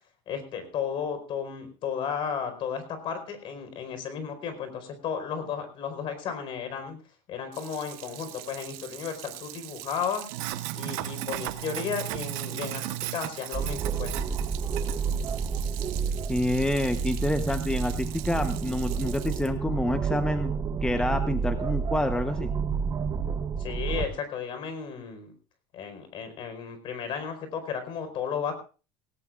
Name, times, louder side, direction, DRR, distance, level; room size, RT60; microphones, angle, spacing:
voice 1, 0.3-7.0 7.3-10.3 10.7-12.9 13.1-14.1 23.6-25.3 25.7-28.5, left 7 dB, 55° left, 8 dB, 4.5 m, -34 dB
Sink (filling or washing), 7.5-19.5, right 16 dB, 80° right, 1.1 m, -38 dB
sound 1, 13.5-24.1, right 6 dB, 30° right, 1.1 m, -30 dB
voice 2, 16.3-22.5, left 1 dB, 5° left, 8 dB, 0.9 m, -28 dB
18.5 x 17.5 x 2.5 m, 0.35 s
supercardioid pair, 120°, 11 cm